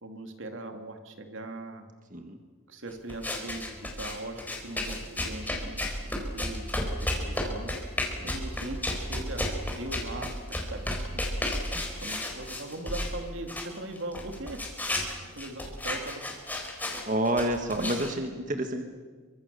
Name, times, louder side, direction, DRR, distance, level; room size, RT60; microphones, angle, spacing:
voice 1, 0.0-1.8 2.7-6.0 6.3-6.7 7.0-7.7 8.2-9.5 9.8-11.2 12.0-14.6 15.4-16.2 17.8-18.1, right 2 dB, 70° right, 5 dB, 2.7 m, -40 dB
voice 2, 2.1-2.4 8.2-8.3 17.0-18.8, right 1 dB, 40° right, 5 dB, 1.7 m, -29 dB
sound 1, 3.1-13.2 13.5-18.1, left 1 dB, 10° left, 4.3 m, -33 dB
28.0 x 24.5 x 7.0 m, 1.5 s
head